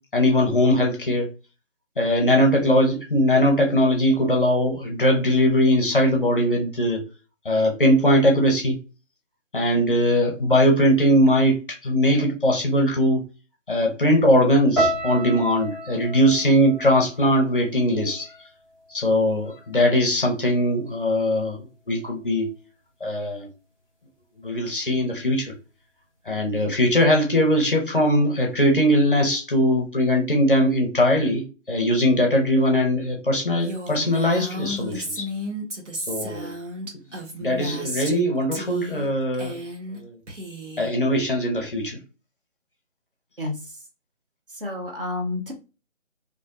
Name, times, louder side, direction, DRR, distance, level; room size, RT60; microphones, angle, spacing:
voice 1, 0.1-1.3 2.0-7.0 7.4-8.8 9.5-13.2 13.7-18.3 18.9-22.5 23.0-23.5 24.4-25.5 26.3-35.3 36.1-36.5 37.4-39.6 40.0-40.2 40.8-42.0, equal, 45° left, 2 dB, 0.6 m, -20 dB
sound 1, 14.8-19.0 19.2-20.0 20.6-20.8, right 1 dB, 20° right, 1.0 m, -31 dB
Female speech woman speaking, 33.6-38.2 38.5-39.1 39.3-40.0 40.3-40.9, equal, 65° right, 1.0 m, -33 dB
voice 2, 44.6-45.5, left 2 dB, 45° right, 1 dB, 0.6 m, -29 dB
2.5 x 2.1 x 2.4 m, 0.32 s
figure-of-eight pair, 160°, 38 cm